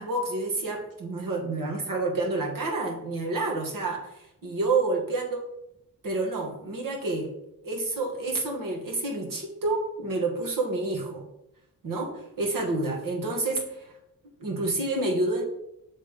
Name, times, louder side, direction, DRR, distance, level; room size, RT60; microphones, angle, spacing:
voice 1, 0.0-5.4 6.0-7.3 7.6-11.3 11.8-13.9 14.4-15.4, right 2 dB, 65° right, 1 dB, 1.7 m, -29 dB
6.5 x 3.5 x 5.2 m, 0.81 s
wide cardioid pair, 145°, 35 cm